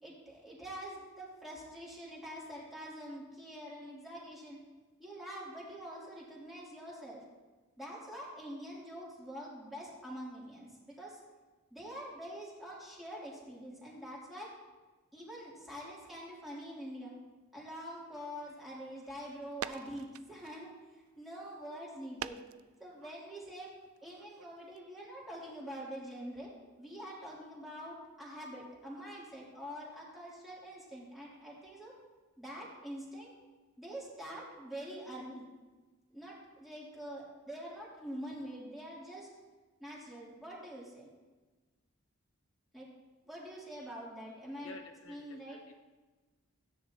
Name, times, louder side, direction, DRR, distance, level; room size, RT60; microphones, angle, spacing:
voice 1, 0.0-4.6 5.0-7.2 7.8-11.2 11.7-14.5 15.1-17.1 17.5-22.4 22.8-23.7 24.0-26.5 26.8-31.9 32.4-33.3 33.8-35.5 36.1-39.3 39.8-41.1 42.7-42.9 43.3-44.8 45.1-45.6, equal, ahead, -7 dB, 3.0 m, -45 dB
sound 1, 18.1-24.8, right 9 dB, 80° right, 0.4 m, -48 dB
voice 2, 44.6-45.7, left 3 dB, 70° left, 4 dB, 0.9 m, -51 dB
16.0 x 10.0 x 2.9 m, 1.3 s
head